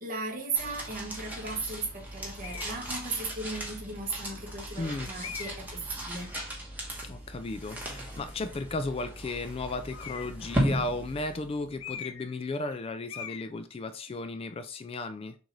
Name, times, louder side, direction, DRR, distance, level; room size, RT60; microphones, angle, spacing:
voice 1, 0.0-6.3, right 3 dB, 40° right, 1.3 m, -36 dB
sound 1, 0.5-11.9, right 1 dB, 10° right, 1.1 m, -36 dB
sound 2, 2.4-2.8 3.6-3.7 5.2-5.7 9.9-10.5 11.8-12.4 12.6-12.8 13.1-13.5, left 8 dB, 80° left, 0.5 m, -41 dB
voice 2, 4.8-5.1 7.0-15.4, left 3 dB, 30° left, 0.3 m, -35 dB
6.3 x 2.6 x 3.1 m
head